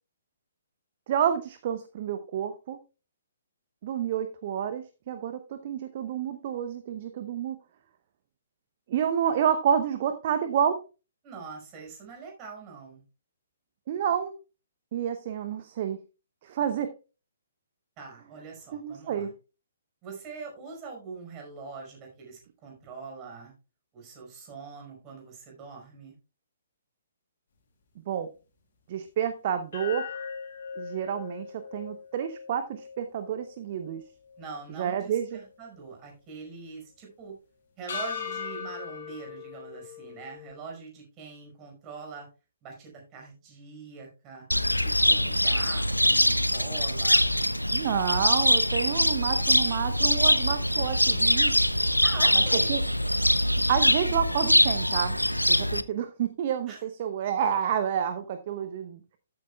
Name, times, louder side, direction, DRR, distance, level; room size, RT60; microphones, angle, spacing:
voice 1, 1.1-2.8 3.8-7.6 8.9-10.8 13.9-14.3 14.9-16.0 16.4-16.9 18.7-19.3 28.1-28.3 28.9-30.2 30.8-34.0 34.8-35.4 47.7-51.5 52.7-52.8 53.7-55.2 55.5-59.0, right 8 dB, 40° right, 9 dB, 0.8 m, -29 dB
voice 2, 11.2-13.0 18.0-19.3 20.0-23.5 23.9-26.1 34.4-37.4 37.8-42.3 42.6-44.4 44.7-47.3 52.0-52.7 56.7-56.8, right 5 dB, 25° right, 0 dB, 5.0 m, -43 dB
sound 1, 29.7-34.0 34.4-34.5 37.9-40.5, left 6 dB, 50° left, 3.9 m, -39 dB
Cricket, 44.5-55.8, equal, 85° left, 0.6 m, -23 dB
13.5 x 8.7 x 2.3 m, 0.31 s
figure-of-eight pair, 125°, 0 cm